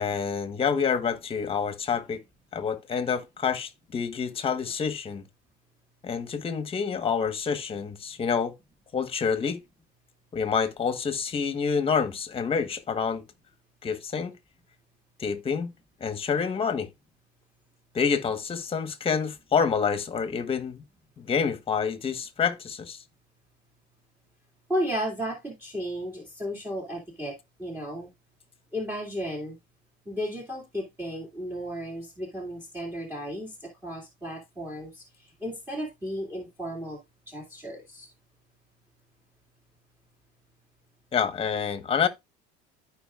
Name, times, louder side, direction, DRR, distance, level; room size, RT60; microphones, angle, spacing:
voice 1, 0.0-2.2 2.5-5.2 6.0-8.5 8.9-9.6 10.3-13.2 13.8-14.4 15.2-15.7 16.0-16.9 17.9-20.8 21.2-23.0 41.1-42.1, left 6 dB, 25° left, 1.3 m, -27 dB
voice 2, 24.7-28.1 28.7-29.6 30.1-37.0 37.3-38.1, equal, 10° right, 2.3 m, -34 dB
14.0 x 5.0 x 2.4 m
cardioid pair, 120°, 21 cm